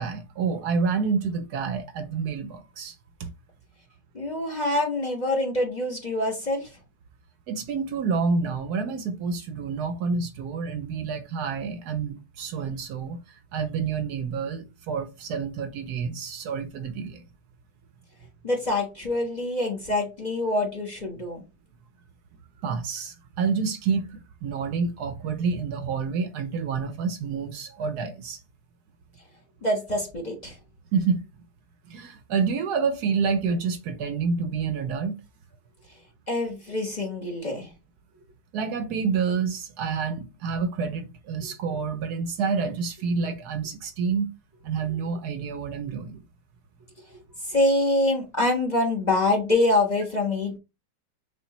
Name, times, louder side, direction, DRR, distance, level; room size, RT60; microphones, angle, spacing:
voice 1, 0.0-2.9 3.2-3.3 7.5-13.2 13.5-17.2 22.6-28.4 30.9-31.2 31.9-35.2 38.5-44.3 44.6-46.2, right 5 dB, 70° right, 1.1 m, -28 dB
voice 2, 4.1-6.7 18.4-21.4 29.6-30.5 36.3-37.7 47.5-50.6, left 2 dB, 30° left, 1.1 m, -25 dB
6.4 x 2.5 x 3.0 m
omnidirectional pair, 1.8 m